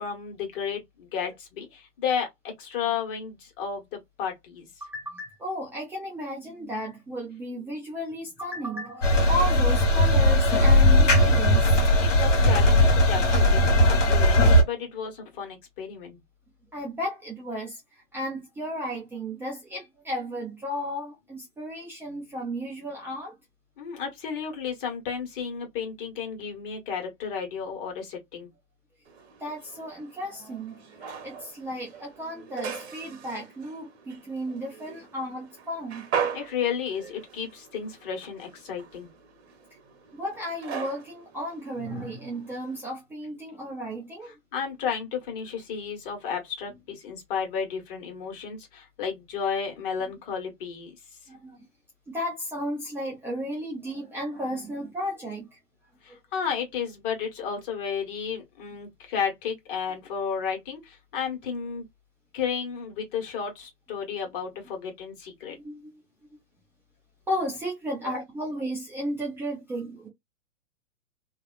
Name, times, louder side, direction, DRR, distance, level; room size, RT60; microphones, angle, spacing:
voice 1, 0.0-4.6 12.0-16.2 23.8-28.5 36.3-39.1 44.5-50.9 56.0-61.9 62.3-65.6, left 7 dB, 45° left, 1.3 m, -33 dB
voice 2, 4.8-11.8 16.7-23.3 29.4-36.1 40.1-44.3 50.1-50.2 51.3-51.7 52.1-55.6 56.1-56.2 65.5-66.0 67.3-70.1, equal, 5° right, 0.4 m, -34 dB
sound 1, 9.0-14.6, left 1 dB, 75° left, 1.2 m, -18 dB
sound 2, 29.1-42.8, right 6 dB, 60° right, 1.1 m, -39 dB
2.6 x 2.3 x 2.4 m
figure-of-eight pair, 115°, 37 cm